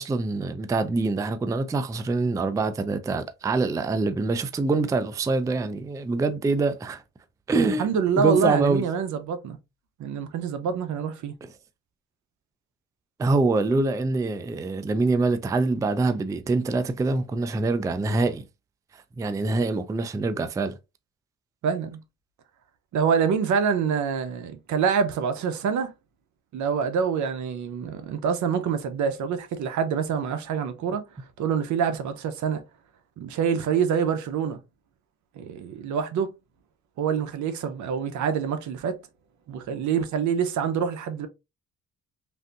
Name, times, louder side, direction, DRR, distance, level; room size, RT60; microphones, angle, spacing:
voice 1, 0.0-7.0 7.5-7.9 8.2-8.8 11.4-11.5 13.2-18.4 19.2-20.8, right 3 dB, 10° right, 0.3 m, -25 dB
voice 2, 7.8-9.6 10.0-11.3 21.6-22.0 22.9-25.9 26.5-31.0 31.4-32.6 33.2-34.6 35.4-36.3 37.0-39.0 39.5-41.3, right 7 dB, 75° right, 0.7 m, -26 dB
3.4 x 2.6 x 2.5 m
cardioid pair, 90°, 30 cm